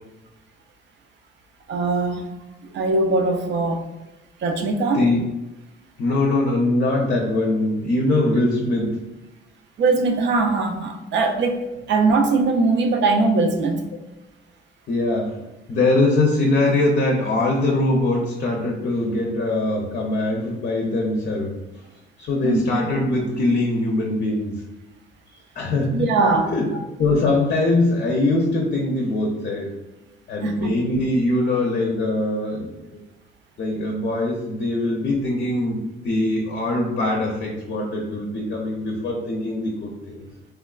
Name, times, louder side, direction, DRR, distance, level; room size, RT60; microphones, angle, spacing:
voice 1, 1.7-2.3 2.7-3.8 4.4-5.0 9.8-13.9 22.4-22.6 25.9-26.5 30.4-30.7, right 3 dB, 65° right, 5 dB, 0.5 m, -21 dB
voice 2, 6.0-9.1 14.9-15.4 15.7-21.5 22.2-24.5 25.6-26.1 26.5-29.7 30.3-33.0 33.6-40.2, left 2 dB, 50° left, -1 dB, 0.5 m, -22 dB
3.2 x 2.3 x 2.3 m, 1.0 s
cardioid pair, 90°, 20 cm